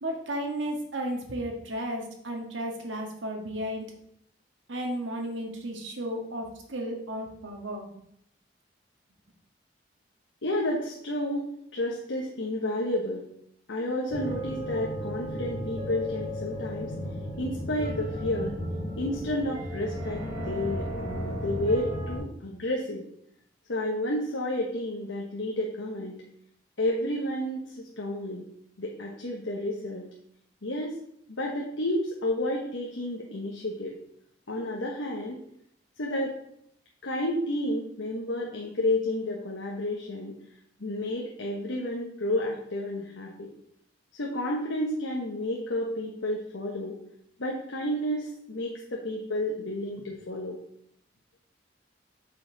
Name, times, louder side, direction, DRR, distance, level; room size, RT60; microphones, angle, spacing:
voice 1, 0.0-3.9 4.7-7.9, right 1 dB, 90° right, 1 dB, 1.7 m, -33 dB
voice 2, 10.4-13.2 13.7-16.9 17.4-18.5 19.0-23.0 23.7-26.2 26.8-28.5 28.8-30.1 30.6-31.0 31.3-33.9 34.5-35.4 36.0-36.3 37.0-40.4 40.8-43.5 44.1-47.0 47.4-50.6, left 1 dB, 90° left, -1 dB, 1.2 m, -31 dB
sound 1, 14.1-22.2, equal, 30° right, 2.7 m, -34 dB
8.1 x 5.7 x 3.9 m, 0.70 s
head